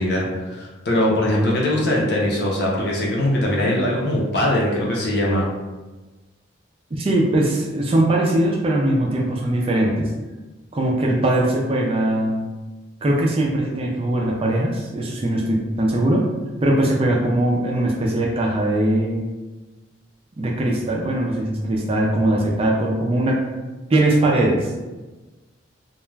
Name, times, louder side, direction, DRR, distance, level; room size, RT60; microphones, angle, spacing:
voice 1, 0.0-5.5, left 1 dB, 55° left, -3 dB, 0.6 m, -21 dB
voice 2, 6.9-10.1 10.7-12.5 13.0-16.2 16.6-19.3 20.4-23.3 23.9-24.7, right 1 dB, 30° right, -2 dB, 0.3 m, -20 dB
2.3 x 2.1 x 3.1 m, 1.2 s
head